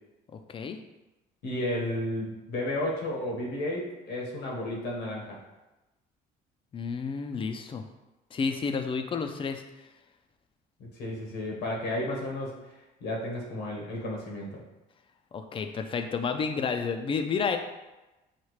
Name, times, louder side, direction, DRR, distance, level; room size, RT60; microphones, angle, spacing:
voice 1, 1.4-5.4 10.9-12.6 13.0-14.6, left 1 dB, 85° left, -2 dB, 1.2 m, -32 dB
voice 2, 6.7-7.8 8.3-9.6 15.3-17.6, left 5 dB, 30° left, 7 dB, 0.4 m, -30 dB
5.7 x 2.4 x 3.2 m, 1.0 s
cardioid pair, 110°, 17 cm